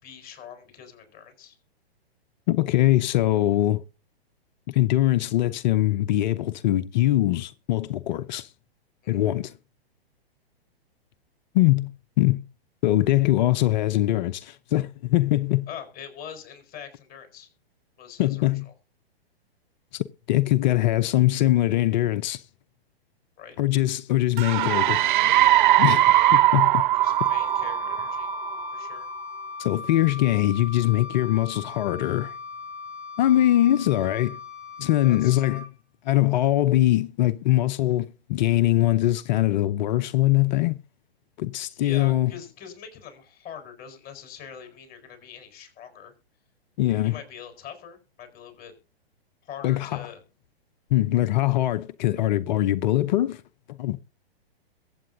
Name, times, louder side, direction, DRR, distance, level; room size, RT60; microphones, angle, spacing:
voice 1, 0.0-1.6 9.0-9.2 15.7-17.5 18.0-18.6 23.4-23.6 26.9-28.3 28.7-29.1 35.0-35.4 41.7-46.1 47.0-48.7 49.4-50.2, left 8 dB, 30° left, 4.9 m, -43 dB
voice 2, 2.5-3.8 4.7-8.5 9.1-9.5 11.5-11.9 12.2-12.4 12.8-15.7 18.2-18.7 19.9-22.4 23.6-25.0 25.8-26.8 29.6-32.4 33.2-34.4 34.8-35.6 36.0-40.8 41.4-42.3 46.8-47.1 49.6-50.0 50.9-53.4 53.7-54.0, left 15 dB, 45° left, 0.8 m, -22 dB
sound 1, 24.4-28.9, right 14 dB, 50° right, 0.5 m, -20 dB
Wind instrument woodwind instrument, 27.0-35.7, left 4 dB, 5° right, 5.9 m, -38 dB
22.5 x 8.8 x 2.7 m
hypercardioid pair, 120°, 31 cm